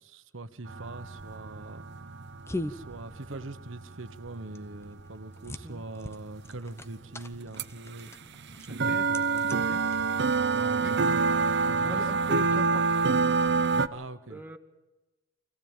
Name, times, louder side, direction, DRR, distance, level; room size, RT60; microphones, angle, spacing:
voice 1, 0.0-1.8 2.7-8.1 8.6-9.5 10.5-12.1 13.9-14.4, right 2 dB, 75° right, 11 dB, 1.2 m, -42 dB
sound 1, 0.7-6.6 7.0-7.1 7.3-7.6 8.0-13.9, right 4 dB, 60° right, 0.8 m, -27 dB
sound 2, 1.0-10.5, left 1 dB, 15° left, 0.8 m, -43 dB
voice 2, 8.7-9.1 9.7-9.8 10.8-11.2 11.8-13.1 14.3-14.6, left 1 dB, 10° right, 4 dB, 1.6 m, -41 dB
25.0 x 16.0 x 9.0 m, 1.1 s
head